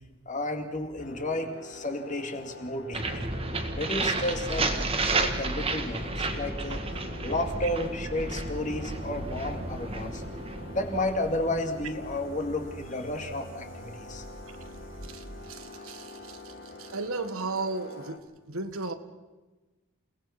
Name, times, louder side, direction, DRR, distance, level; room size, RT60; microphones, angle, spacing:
voice 1, 0.3-3.3 3.7-6.8 7.2-10.2 10.7-14.2 15.7-15.8, left 1 dB, 35° left, 5 dB, 2.3 m, -32 dB
sound 1, 1.0-18.2, left 2 dB, 50° left, 2.4 m, -46 dB
sound 2, 2.9-12.7, right 3 dB, 25° right, 1.7 m, -32 dB
sound 3, 3.1-15.5, right 1 dB, 65° right, 2.4 m, -42 dB
voice 2, 15.0-16.5 16.8-18.2 18.5-18.9, right 3 dB, 80° right, 9 dB, 1.6 m, -35 dB
29.0 x 18.0 x 6.0 m, 1.2 s
head